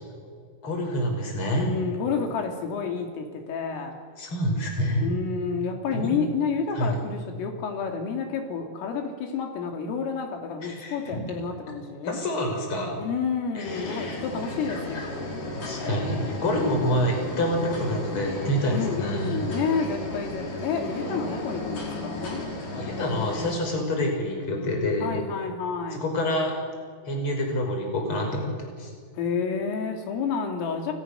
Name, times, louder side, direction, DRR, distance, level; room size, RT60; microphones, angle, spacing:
voice 1, 0.6-1.7 4.2-5.0 5.9-6.2 6.8-7.0 10.6-10.9 12.0-13.0 13.5-14.2 15.6-19.5 22.7-25.2 25.9-26.6 27.1-28.9, equal, 25° left, 2 dB, 5.9 m, -27 dB
voice 2, 1.6-4.0 5.0-12.2 13.0-15.3 18.7-22.4 25.0-26.0 29.2-30.9, left 5 dB, 80° left, 4 dB, 4.9 m, -30 dB
sound 1, 13.6-23.5, left 2 dB, 40° left, 6.3 m, -34 dB
29.5 x 28.0 x 6.7 m, 2.1 s
omnidirectional pair, 5.9 m